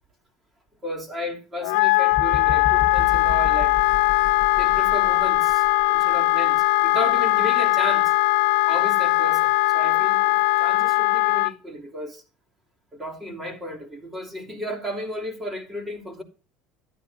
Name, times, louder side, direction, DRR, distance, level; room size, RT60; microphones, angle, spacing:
voice 1, 0.8-3.7 4.6-8.1 8.7-12.2 12.9-16.2, equal, 20° right, 3.0 m, -33 dB
Wind instrument woodwind instrument, 1.6-11.5, left 23 dB, 75° left, 0.5 m, -20 dB
sound 1, 2.1-6.1 6.6-6.8, left 5 dB, 35° left, 0.7 m, -33 dB
14.0 x 12.0 x 2.7 m
supercardioid pair, 105°, 0 cm